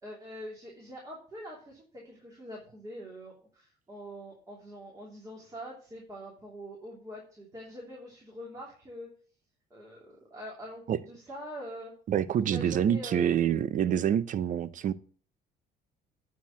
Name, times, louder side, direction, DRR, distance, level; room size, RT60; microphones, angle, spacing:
voice 1, 0.0-9.1 9.7-11.9 12.5-13.4, equal, 20° right, 3.2 m, -44 dB
voice 2, 12.1-14.9, right 9 dB, 50° right, 0.6 m, -26 dB
9.4 x 4.5 x 7.1 m
cardioid pair, 110°, 17 cm